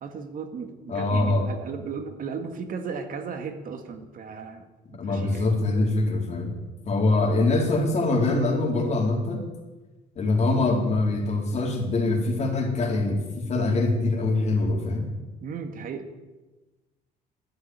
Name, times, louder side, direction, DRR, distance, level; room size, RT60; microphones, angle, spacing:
voice 1, 0.0-4.7 5.0-5.5 15.4-16.1, right 5 dB, 55° right, 7 dB, 1.9 m, -35 dB
voice 2, 0.9-1.4 5.0-6.5 6.9-9.4 10.2-15.1, left 2 dB, 40° left, 0 dB, 4.1 m, -24 dB
12.0 x 9.7 x 9.7 m, 1.2 s
cardioid pair, 110°, 17 cm